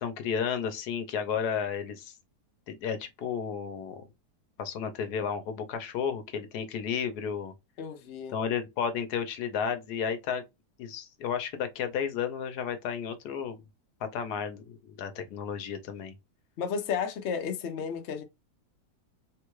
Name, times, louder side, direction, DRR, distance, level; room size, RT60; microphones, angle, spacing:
voice 1, 0.0-2.1 2.7-4.1 4.6-7.5 8.3-10.4 10.8-13.6 14.0-16.1, left 7 dB, 70° left, 1.1 m, -32 dB
voice 2, 7.8-8.4 16.6-18.2, left 6 dB, 85° left, 0.5 m, -33 dB
3.6 x 2.2 x 3.1 m
omnidirectional pair, 2.0 m